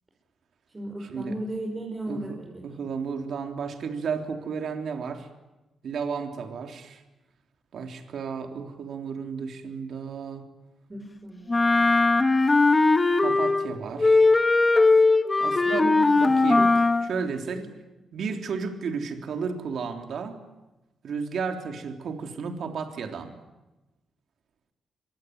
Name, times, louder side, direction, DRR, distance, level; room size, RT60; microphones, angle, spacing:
voice 1, 0.7-2.6 10.9-11.8 15.7-16.2 16.6-16.7 17.5-17.6, right 1 dB, 20° right, 0 dB, 5.3 m, -36 dB
voice 2, 2.1-2.4 2.6-5.3 5.8-7.0 7.7-10.4 13.2-14.3 15.4-15.9 16.2-16.7 17.0-17.7 18.1-20.4 21.0-23.4, right 5 dB, 70° right, 5 dB, 3.5 m, -33 dB
Wind instrument woodwind instrument, 11.5-13.7 14.0-17.1, left 3 dB, 25° left, 1.5 m, -19 dB
25.0 x 23.5 x 9.5 m, 1.0 s
cardioid pair, 105°, 0 cm